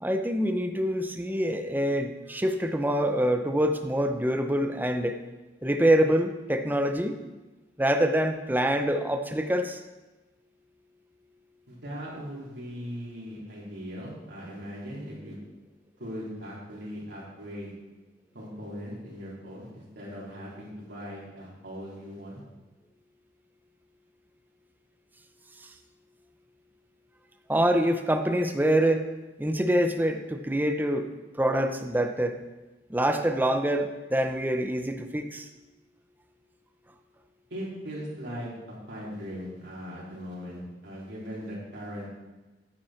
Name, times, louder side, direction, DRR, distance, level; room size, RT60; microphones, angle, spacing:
voice 1, 0.0-5.2 5.6-7.2 7.8-9.8 27.5-29.1 29.4-31.1 31.3-32.4 32.9-35.5, right 1 dB, 10° right, 6 dB, 0.7 m, -25 dB
voice 2, 11.7-15.4 16.0-17.7 18.3-22.4 37.5-42.1, equal, 85° right, -6 dB, 3.9 m, -39 dB
9.7 x 9.0 x 4.4 m, 1.1 s
head